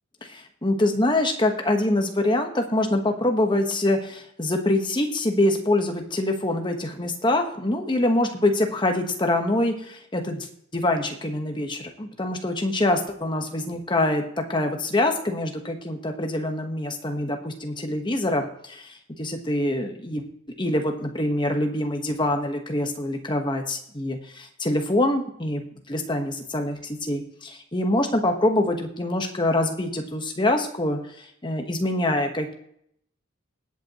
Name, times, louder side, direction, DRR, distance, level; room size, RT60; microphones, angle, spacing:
voice 1, 0.2-10.5 10.7-20.2 20.6-32.5, left 1 dB, 20° left, 4 dB, 1.2 m, -25 dB
21.0 x 8.2 x 3.0 m, 0.71 s
head